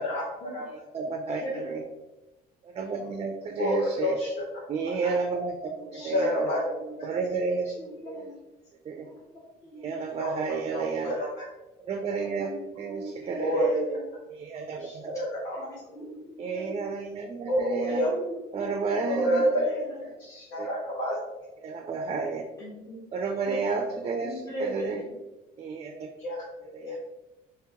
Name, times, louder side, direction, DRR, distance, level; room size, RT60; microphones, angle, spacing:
voice 1, 0.7-1.8 2.6-4.2 4.7-6.5 7.0-7.7 8.9-9.1 9.8-11.2 11.8-12.5 12.8-13.7 14.3-15.2 16.4-18.1 18.5-19.4 20.6-20.7 21.6-22.4 23.1-25.0 25.6-26.1 26.7-27.0, right 4 dB, 35° right, 4 dB, 0.4 m, -31 dB
voice 2, 1.4-1.8 3.0-3.1 5.7-6.1 6.5-7.0 7.8-8.3 9.0-9.1 9.6-9.9 12.2-14.0 15.5-16.9 17.9-18.3 18.6-20.0 22.6-23.0 23.5-23.6 24.2-25.1, right 1 dB, 20° left, -6 dB, 1.2 m, -39 dB
voice 3, 3.6-4.3 5.0-5.1 5.9-6.6 8.0-8.1 10.2-10.3 10.7-11.4 13.4-13.8 14.8-15.7 17.5-18.1 19.1-19.8 20.2-21.1 26.2-26.3 26.8-27.0, equal, 90° left, -8 dB, 1.3 m, -28 dB
2.9 x 2.9 x 3.5 m, 1.0 s
cardioid pair, 110°, 17 cm